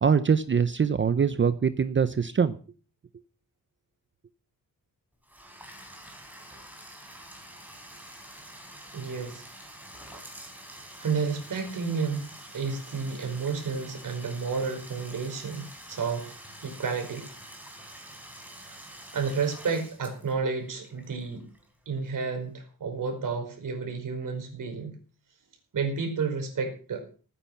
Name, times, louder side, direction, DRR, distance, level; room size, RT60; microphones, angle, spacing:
voice 1, 0.0-2.6, right 6 dB, 35° right, 13 dB, 0.7 m, -23 dB
Bathtub (filling or washing), 5.2-22.0, right 1 dB, 5° right, 3.8 m, -47 dB
voice 2, 8.9-9.5 11.0-17.3 19.1-21.4 21.9-24.9 25.7-27.1, right 5 dB, 60° right, 4 dB, 5.1 m, -31 dB
18.0 x 10.0 x 5.9 m, 0.38 s
wide cardioid pair, 180°, 35 cm